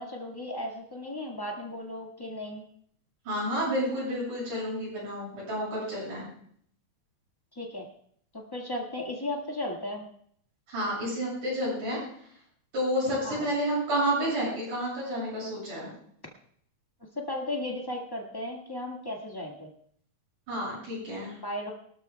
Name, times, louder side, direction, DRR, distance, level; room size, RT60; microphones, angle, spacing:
voice 1, 0.0-2.6 7.5-7.9 8.3-10.0 13.2-13.4 17.1-19.7 21.4-21.7, left 1 dB, 25° left, -1 dB, 0.4 m, -35 dB
voice 2, 3.2-6.2 10.7-12.0 12.7-15.9 20.5-21.4, equal, 75° right, -7 dB, 8.6 m, -30 dB
23.5 x 13.0 x 2.2 m, 0.63 s
omnidirectional pair, 3.6 m